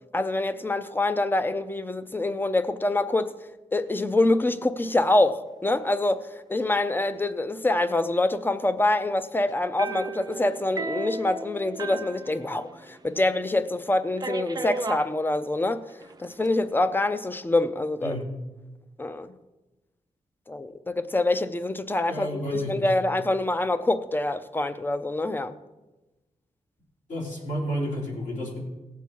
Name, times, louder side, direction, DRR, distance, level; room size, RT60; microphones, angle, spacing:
voice 1, 0.1-3.3 3.7-15.8 16.2-18.1 19.0-19.3 20.5-25.6, left 2 dB, 15° left, 0.6 m, -25 dB
sound 1, 9.8-13.0 13.3-13.4 14.2-15.1 16.0-16.5, right 3 dB, 30° right, 0.6 m, -34 dB
voice 2, 18.0-18.3 22.1-22.9 27.1-28.6, equal, 65° left, 4.0 m, -31 dB
18.0 x 7.3 x 4.6 m
wide cardioid pair, 135°, 14 cm